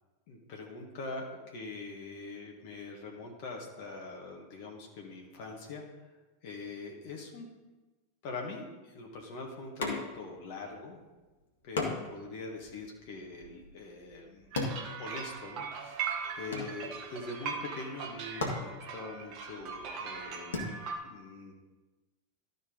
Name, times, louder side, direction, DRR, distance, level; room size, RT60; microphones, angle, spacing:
voice 1, 0.3-6.2 6.4-7.5 8.2-11.0 11.6-14.5 14.8-20.5 21.0-21.5, left 3 dB, 45° left, 0 dB, 1.5 m, -43 dB
sound 1, 9.8-10.4 10.7-10.8 11.8-15.7 16.0-17.2 17.9-18.0 18.3-20.6, left 3 dB, 65° left, 1.8 m, -38 dB
sound 2, 14.5-21.0, right 6 dB, 40° right, 1.1 m, -40 dB
12.5 x 5.4 x 4.0 m, 1.2 s
figure-of-eight pair, 90°, 0 cm